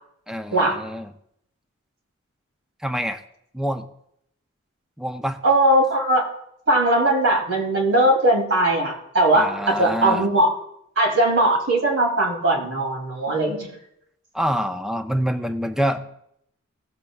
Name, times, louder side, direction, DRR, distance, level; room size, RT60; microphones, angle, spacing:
voice 1, 0.3-1.1 2.8-3.2 3.5-3.9 5.0-5.4 9.3-10.3 14.3-16.0, equal, 5° right, 7 dB, 0.5 m, -26 dB
voice 2, 5.4-6.2 6.7-9.4 9.8-10.5 11.0-13.7, right 1 dB, 75° right, -1 dB, 3.2 m, -19 dB
17.5 x 8.1 x 2.4 m, 0.76 s
head